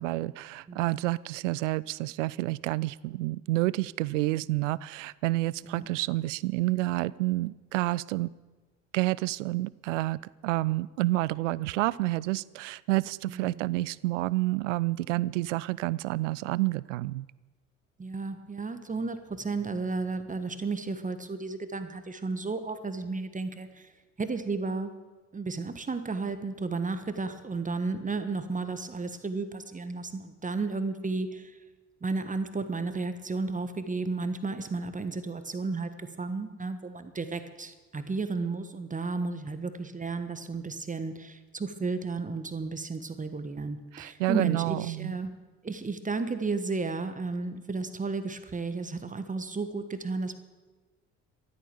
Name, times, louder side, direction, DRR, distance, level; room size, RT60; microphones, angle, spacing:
voice 1, 0.0-8.3 8.9-17.3 43.9-45.2, right 19 dB, 65° right, 22 dB, 0.6 m, -29 dB
voice 2, 0.7-1.2 5.7-5.9 13.3-13.8 18.0-23.9 24.2-24.9 25.3-31.5 32.0-45.3 45.6-50.4, right 3 dB, 20° right, 9 dB, 1.5 m, -33 dB
14.0 x 13.5 x 7.0 m, 1.3 s
figure-of-eight pair, 55°, 40 cm